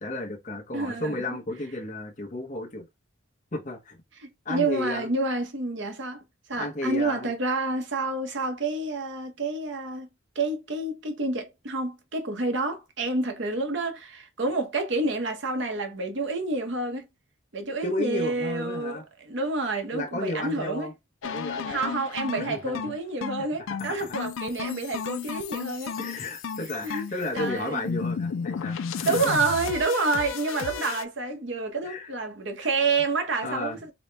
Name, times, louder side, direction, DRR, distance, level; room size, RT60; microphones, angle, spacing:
voice 1, 0.0-2.9 3.5-4.0 4.4-5.1 6.6-7.3 17.8-19.0 19.9-20.9 21.2-22.0 22.4-22.8 23.4-24.1 26.0-29.3 31.8-32.1 32.6-32.7 33.4-33.8, left 2 dB, 35° left, 0.8 m, -33 dB
voice 2, 0.7-1.4 4.2-6.2 6.5-10.1 10.3-17.1 17.5-20.9 21.7-25.9 26.8-27.0 27.3-27.8 29.1-33.8, right 3 dB, 60° right, 0.8 m, -28 dB
sound 1, 21.2-31.0, left 6 dB, 75° left, 0.4 m, -33 dB
4.0 x 2.1 x 3.2 m
head